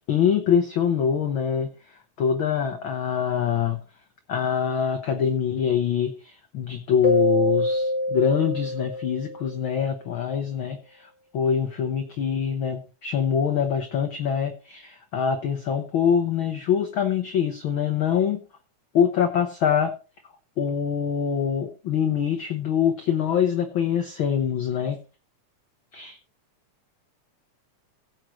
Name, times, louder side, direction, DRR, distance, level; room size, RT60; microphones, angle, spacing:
voice 1, 0.1-1.7 2.2-3.8 4.3-18.4 18.9-19.9 20.6-25.0 25.9-26.2, left 8 dB, 60° left, 6 dB, 1.4 m, -24 dB
Keyboard (musical), 7.0-9.8, left 1 dB, 5° right, 0.9 m, -25 dB
16.5 x 7.7 x 3.0 m, 0.32 s
omnidirectional pair, 3.4 m